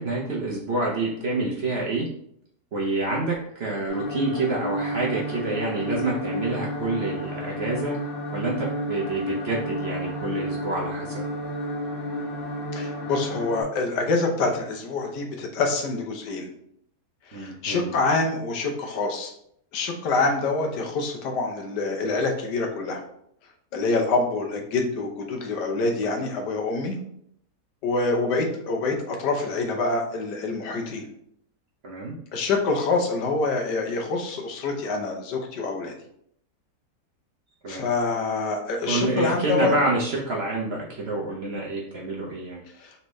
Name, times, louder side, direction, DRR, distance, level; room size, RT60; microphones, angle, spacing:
voice 1, 0.0-2.1 2.7-8.0 8.3-11.2 17.3-17.9 31.8-32.2 37.6-37.8 38.9-42.6, right 2 dB, 50° right, -4 dB, 0.8 m, -27 dB
sound 1, 3.9-13.6, equal, 35° left, 1.2 m, -31 dB
voice 2, 12.7-16.5 17.3-19.3 19.7-23.0 23.7-27.0 27.8-31.1 32.3-35.9 37.7-39.7 42.8-42.9, left 3 dB, 80° left, 2 dB, 1.4 m, -26 dB
4.1 x 3.4 x 3.1 m, 0.69 s
omnidirectional pair, 1.8 m